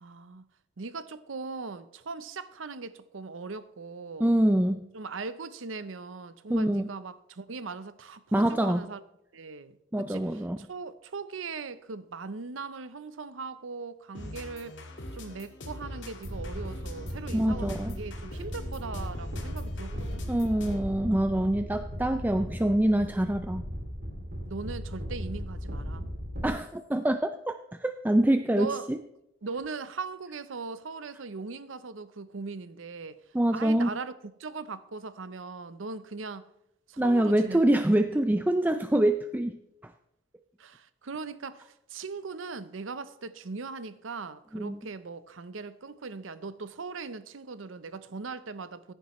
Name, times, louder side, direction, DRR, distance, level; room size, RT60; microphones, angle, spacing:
voice 1, 0.0-0.5 0.8-4.3 4.9-9.0 9.3-14.8 15.1-20.2 24.5-26.0 28.5-28.9 29.4-33.2 33.5-34.1 34.4-36.5 36.9-37.6 38.1-38.2 40.6-48.9, right 4 dB, 85° right, 0.7 m, -39 dB
voice 2, 4.2-4.8 6.5-6.9 8.3-8.8 9.9-10.6 17.3-17.9 20.3-23.6 26.4-29.0 33.3-33.9 37.0-39.5 44.5-44.8, right 1 dB, 10° right, 0.4 m, -25 dB
sound 1, 14.1-21.0, left 1 dB, 65° left, 1.9 m, -43 dB
sound 2, 16.2-26.5, equal, 55° right, 2.3 m, -37 dB
15.5 x 10.0 x 3.1 m
head